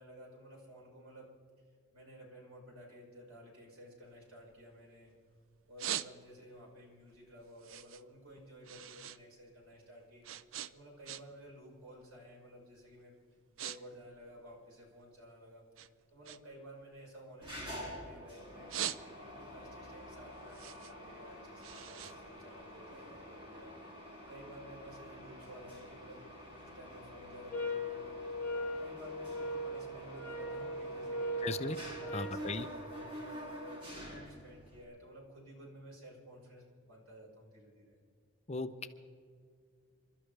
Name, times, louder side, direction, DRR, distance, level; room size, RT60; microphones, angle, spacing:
voice 1, 0.0-1.3 1.9-5.1 5.7-10.3 10.7-13.2 13.5-15.7 16.1-18.7 19.1-23.7 24.3-26.2 26.6-31.5 32.0-38.0, equal, 85° right, -3 dB, 5.2 m, -53 dB
sound 1, 4.0-5.2 5.5-6.6 7.0-9.2 9.5-11.5 11.8-12.2 12.8-12.9 13.2-13.8 14.0-15.3 15.7-18.1 18.5-19.5 19.9-23.0, right 11 dB, 70° right, 0.5 m, -43 dB
Mechanisms, 17.4-34.8, equal, 25° right, 2.6 m, -48 dB
sound 2, 27.5-32.4, equal, 10° left, 3.0 m, -39 dB
voice 2, 31.4-31.8 32.1-32.7 38.5-38.9, left 3 dB, 30° left, 9 dB, 0.6 m, -36 dB
27.5 x 13.0 x 3.4 m, 2.2 s
head